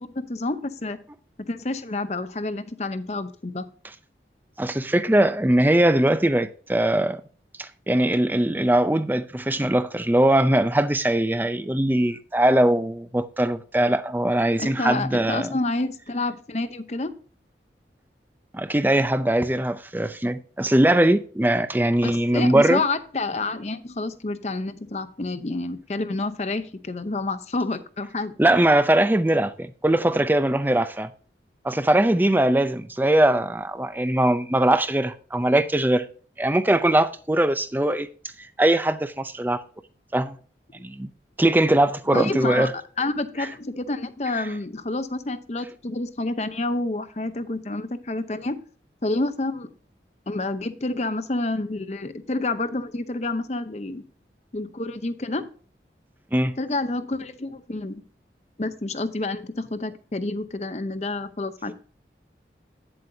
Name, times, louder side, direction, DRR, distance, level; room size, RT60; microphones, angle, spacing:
voice 1, 0.0-1.0 1.5-3.7 14.6-17.1 22.0-28.3 42.1-42.7 43.0-48.6 49.0-49.7 50.3-54.0 54.5-55.5 56.6-58.0 58.6-61.7, left 2 dB, 40° left, 0.7 m, -28 dB
voice 2, 4.6-7.2 7.6-15.5 18.5-22.8 28.4-31.1 31.6-36.1 36.4-38.1 38.6-39.6 40.1-40.4 40.8-41.1 41.4-42.7 56.3-56.5, right 1 dB, 10° right, 0.5 m, -21 dB
9.4 x 7.8 x 2.7 m
head